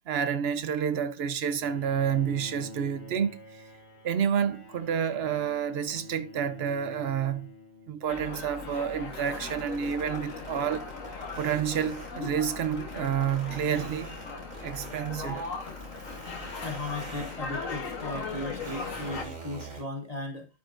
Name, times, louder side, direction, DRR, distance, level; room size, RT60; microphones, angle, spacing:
voice 1, 0.1-3.7 4.0-7.5 7.9-10.9 11.4-14.1 14.6-15.5 16.0-16.2 18.6-18.7 19.1-19.2, right 8 dB, 60° right, 0.9 m, -29 dB
Bowed string instrument, 1.6-8.4, left 3 dB, 55° left, 1.4 m, -47 dB
sound 1, 8.1-19.2, left 4 dB, 85° left, 1.7 m, -38 dB
sound 2, 9.3-19.8, right 3 dB, 85° right, 3.9 m, -44 dB
voice 2, 16.6-20.5, left 2 dB, 35° left, 1.0 m, -36 dB
12.0 x 4.9 x 2.5 m
omnidirectional pair, 1.3 m